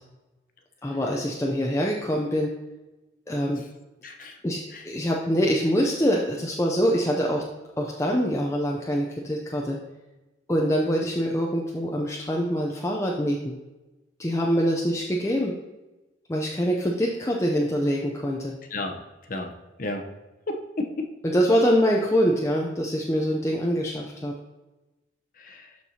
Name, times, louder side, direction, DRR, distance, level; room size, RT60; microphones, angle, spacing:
voice 1, 0.8-2.5 3.3-3.6 4.4-7.4 7.8-9.8 10.5-13.5 14.2-15.5 16.3-18.5 21.2-24.4, equal, 15° left, -1 dB, 0.5 m, -24 dB
voice 2, 4.0-4.4 4.7-4.8 18.7-19.0 19.3-19.5 19.8-20.0 20.5-21.1 25.4-25.7, left 2 dB, 45° left, 4 dB, 0.8 m, -32 dB
12.0 x 4.6 x 2.8 m, 1.1 s
head